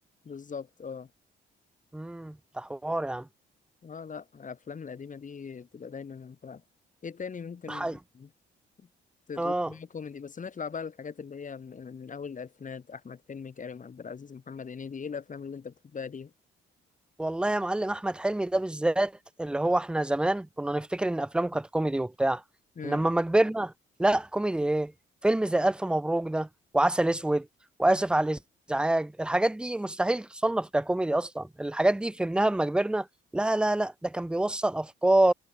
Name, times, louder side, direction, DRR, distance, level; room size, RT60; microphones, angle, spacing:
voice 1, 0.3-1.1 3.8-6.6 7.0-8.3 9.3-16.3 22.8-23.0, left 6 dB, 40° left, 4.5 m, -40 dB
voice 2, 1.9-3.3 7.7-8.0 9.4-9.7 17.2-19.1 19.4-22.4 22.8-23.7 24.0-24.9 25.2-26.5 26.7-27.5 27.8-28.4 28.7-33.1 33.3-35.3, right 1 dB, 5° right, 0.5 m, -26 dB
cardioid pair, 90°, 20 cm